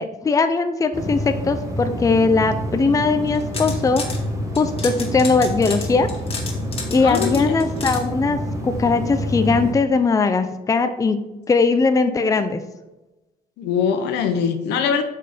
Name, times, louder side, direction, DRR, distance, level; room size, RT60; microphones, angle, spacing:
voice 1, 0.0-4.0 4.6-6.1 6.9-11.2 11.5-12.6, left 4 dB, 20° left, 8 dB, 0.6 m, -19 dB
sound 1, 0.9-9.7, equal, 20° right, 1.5 m, -28 dB
sound 2, 3.3-4.2 4.6-8.0, left 4 dB, 35° left, 2.0 m, -32 dB
voice 2, 7.0-7.6 13.6-15.0, left 7 dB, 85° left, 6 dB, 1.0 m, -22 dB
6.5 x 5.5 x 5.2 m, 1.0 s
cardioid pair, 110°, 17 cm